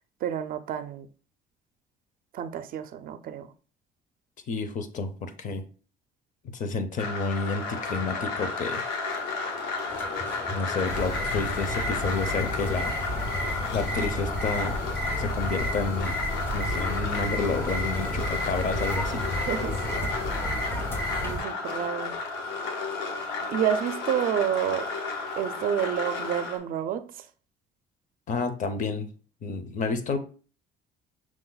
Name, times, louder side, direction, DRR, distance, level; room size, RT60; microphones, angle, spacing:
voice 1, 0.2-1.1 2.3-3.5 19.5-20.0 21.2-22.1 23.5-24.9 25.4-27.3, right 9 dB, 60° right, 0.4 m, -29 dB
voice 2, 4.5-5.6 6.4-8.8 10.5-12.9 13.7-14.8 15.2-16.2 16.5-19.3 28.3-29.1 29.4-30.2, left 4 dB, 50° left, 0.6 m, -30 dB
sound 1, 7.0-26.6, left 4 dB, 90° left, 0.9 m, -33 dB
sound 2, 9.9-21.3, left 1 dB, 15° left, 0.4 m, -40 dB
sound 3, 10.8-21.4, left 1 dB, 75° left, 1.9 m, -32 dB
6.0 x 2.1 x 3.9 m
cardioid pair, 110°, 17 cm